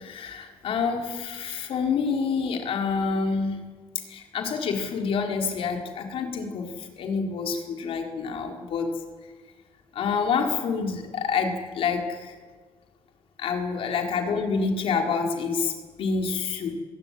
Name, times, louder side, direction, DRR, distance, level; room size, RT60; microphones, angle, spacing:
voice 1, 0.0-3.6 4.1-8.9 9.9-12.3 13.4-15.7 16.0-16.7, left 5 dB, 60° left, 3 dB, 4.2 m, -27 dB
22.0 x 17.0 x 9.1 m, 1.4 s
cardioid pair, 150°, 11 cm